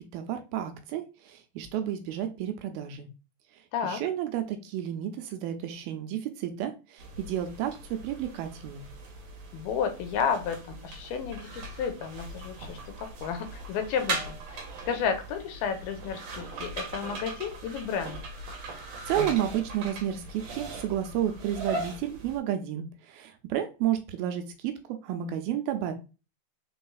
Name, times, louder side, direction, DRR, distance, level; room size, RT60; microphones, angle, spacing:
voice 1, 0.0-3.1 3.5-8.9 19.0-25.9, right 11 dB, 80° right, 7 dB, 2.3 m, -31 dB
sound 1, 7.0-22.4, right 2 dB, 65° right, 1.8 m, -39 dB
voice 2, 9.5-18.2, left 7 dB, 80° left, 6 dB, 2.5 m, -32 dB
5.4 x 4.1 x 2.3 m, 0.31 s
omnidirectional pair, 4.5 m